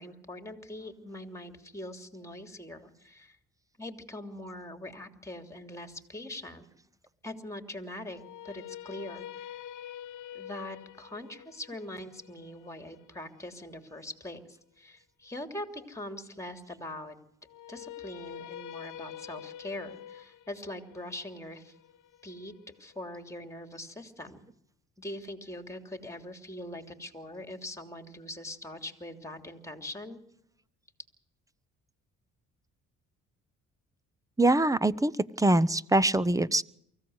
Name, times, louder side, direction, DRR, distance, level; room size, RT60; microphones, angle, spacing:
voice 1, 0.0-3.4 3.8-6.7 7.2-8.2 8.4-9.6 10.3-17.1 17.7-21.7 22.2-22.5 22.8-24.4 25.0-30.2, left 1 dB, 10° left, 7 dB, 3.1 m, -42 dB
sound 1, 8.1-14.2 17.5-23.5, left 10 dB, 80° left, 1.0 m, -46 dB
voice 2, 34.4-35.1 35.4-36.6, right 2 dB, 10° right, 17 dB, 0.8 m, -23 dB
24.0 x 15.5 x 8.0 m, 0.71 s
cardioid pair, 90°, 30 cm